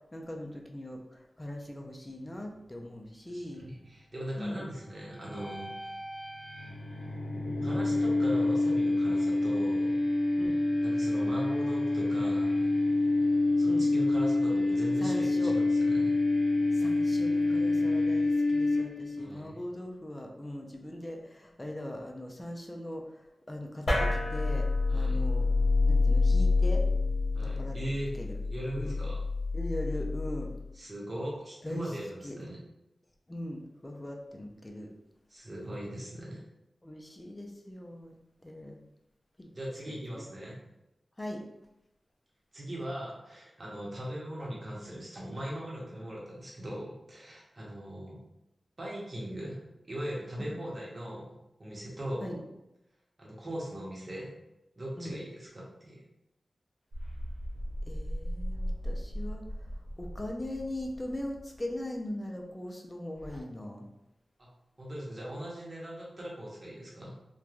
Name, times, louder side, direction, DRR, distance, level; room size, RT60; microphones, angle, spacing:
voice 1, 0.1-3.6 4.4-4.7 10.4-10.6 13.7-13.9 15.0-15.5 16.7-23.0 23.5-24.7 24.9-25.5 25.8-26.8 27.4-27.8 28.2-28.4 28.8-29.0 29.5-30.5 31.6-31.9 32.2-32.3 33.3-34.9 36.8-38.1 38.4-38.8 39.4-39.5 39.9-40.2 41.2-41.4 50.4-50.6 52.2-52.4 55.0-55.2 57.9-59.4 60.0-63.9, left 1 dB, 20° left, 1 dB, 0.4 m, -40 dB
voice 2, 3.3-5.7 7.6-10.0 10.8-12.7 13.6-16.1 19.2-19.6 24.9-25.2 27.3-28.1 28.5-29.2 30.7-32.6 35.3-36.4 39.5-40.6 42.5-48.2 48.8-51.3 51.6-52.3 53.2-54.3 54.8-56.0 64.4-64.5 64.8-67.1, equal, 40° right, -5 dB, 0.9 m, -39 dB
sound 1, 5.2-19.2, left 2 dB, 75° left, 0.5 m, -27 dB
sound 2, 23.9-30.6, left 3 dB, 50° left, 1.1 m, -27 dB
sound 3, 56.9-61.8 63.1-63.4, equal, 75° right, 0.7 m, -38 dB
3.1 x 2.2 x 2.4 m, 0.91 s
wide cardioid pair, 90°, 0 cm